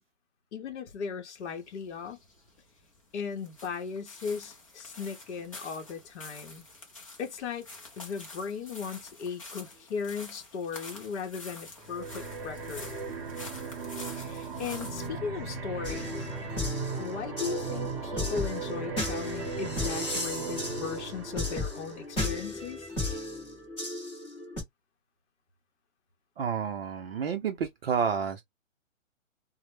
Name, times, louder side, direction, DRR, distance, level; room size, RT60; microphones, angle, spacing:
voice 1, 0.5-2.2 3.1-6.7 7.2-7.7 8.0-12.9 14.1-16.3 17.0-22.9, left 6 dB, 60° left, 0.8 m, -37 dB
sound 1, 1.4-15.1, left 3 dB, 25° left, 0.4 m, -48 dB
sound 2, 11.8-22.3, right 4 dB, 25° right, 0.8 m, -37 dB
sound 3, 15.8-24.6, left 2 dB, 10° left, 0.8 m, -35 dB
voice 2, 26.4-28.4, right 6 dB, 50° right, 0.5 m, -30 dB
2.1 x 2.0 x 3.0 m
hypercardioid pair, 155°, 39 cm